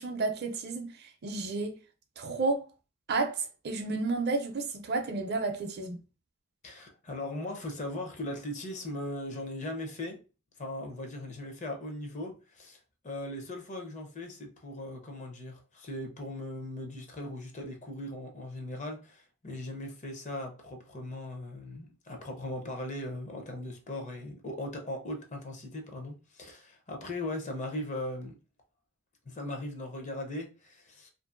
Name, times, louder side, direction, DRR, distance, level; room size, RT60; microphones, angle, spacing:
voice 1, 0.0-1.8 2.2-2.7 3.1-6.0, right 3 dB, 55° right, 0.5 m, -31 dB
voice 2, 6.6-10.2 10.6-28.4 29.3-31.1, left 1 dB, 35° left, 0.6 m, -39 dB
2.6 x 2.4 x 2.4 m
head